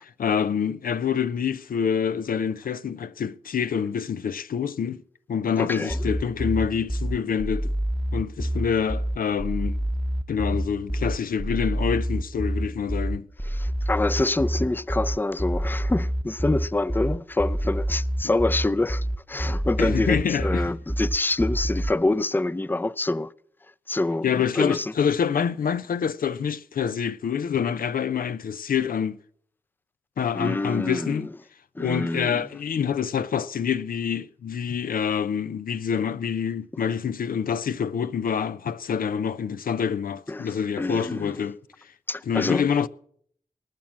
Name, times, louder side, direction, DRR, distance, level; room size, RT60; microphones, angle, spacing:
voice 1, 0.2-5.0 5.3-7.7 8.1-9.8 10.3-13.3 19.8-20.7 24.2-29.2 30.2-31.3 31.8-41.6 42.3-42.9, left 7 dB, 80° left, 0.5 m, -26 dB
voice 2, 5.6-6.1 13.4-23.3 23.9-24.9 30.3-31.3 31.8-32.5 40.3-41.3 42.1-42.7, left 2 dB, 15° left, 0.5 m, -26 dB
sound 1, 5.9-21.9, equal, 5° right, 0.9 m, -27 dB
20.0 x 7.3 x 7.4 m
cardioid pair, 40°, 15 cm